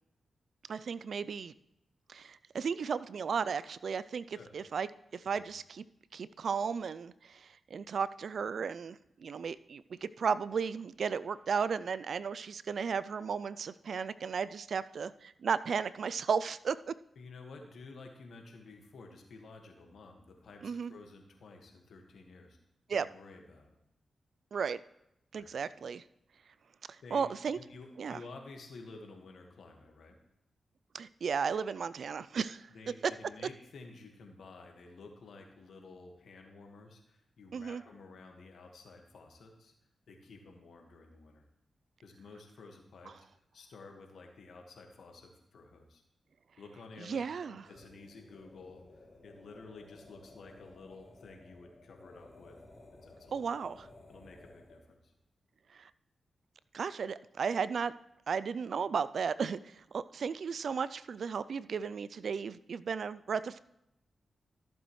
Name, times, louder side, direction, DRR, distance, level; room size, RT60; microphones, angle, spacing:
voice 1, 0.7-1.5 2.1-4.9 5.1-5.8 6.1-17.0 20.6-20.9 22.9-23.0 24.5-24.8 25.3-26.0 26.9-27.6 28.0-28.2 30.9-32.7 33.0-33.1 37.5-37.8 47.0-47.6 53.3-53.9 55.7-55.9 56.7-57.9 58.3-63.6, right 6 dB, 70° right, 16 dB, 0.3 m, -34 dB
voice 2, 17.2-22.6 22.9-23.8 25.3-25.5 27.0-30.2 32.7-39.7 40.1-41.4 42.0-46.0 46.6-52.6 53.0-53.4 54.1-55.1, left 3 dB, 75° left, 3 dB, 1.6 m, -52 dB
sound 1, 47.6-55.0, left 2 dB, 45° left, 3.2 m, -56 dB
14.0 x 7.7 x 3.2 m, 0.84 s
supercardioid pair, 45°, 0 cm